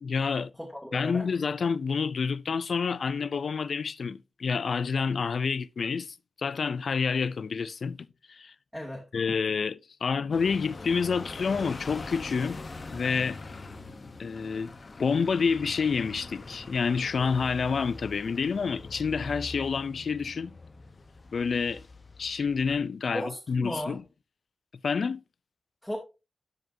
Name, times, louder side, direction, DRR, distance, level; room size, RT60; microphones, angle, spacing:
voice 1, 0.0-0.5 0.9-8.5 9.1-12.6 12.9-13.4 14.2-14.7 15.0-20.5 21.3-21.8 22.2-24.0 24.8-25.2, left 5 dB, 65° left, 0.4 m, -28 dB
voice 2, 0.6-1.3 8.7-9.0 23.1-24.0 25.8-26.0, equal, 5° left, 2.2 m, -35 dB
sound 1, 10.3-22.9, left 3 dB, 45° left, 0.9 m, -43 dB
12.0 x 5.0 x 2.6 m
cardioid pair, 80°, 0 cm